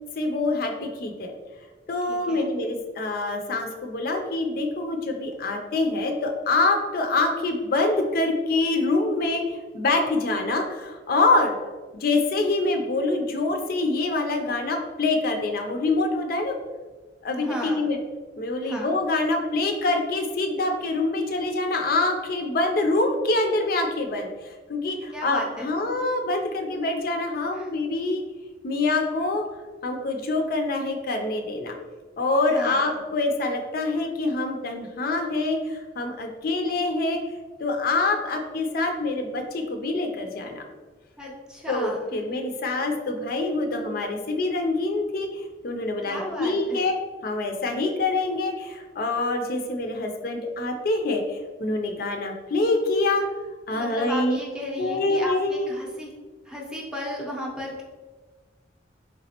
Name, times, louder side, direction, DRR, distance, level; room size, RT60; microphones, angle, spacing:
voice 1, 0.2-1.3 1.9-11.6 11.9-16.6 17.2-18.0 18.4-28.2 28.6-29.4 29.8-31.8 32.2-37.2 37.6-40.6 41.7-47.0 47.2-53.2 53.7-54.4 54.8-55.8, left 2 dB, 55° left, 4 dB, 0.4 m, -25 dB
voice 2, 2.1-2.5 17.4-17.9 18.6-19.0 25.1-25.7 27.5-27.7 32.5-33.0 41.2-42.2 46.1-46.8 53.7-56.1 56.5-57.8, left 1 dB, 5° right, -3 dB, 0.6 m, -34 dB
4.0 x 3.2 x 2.9 m, 1.3 s
head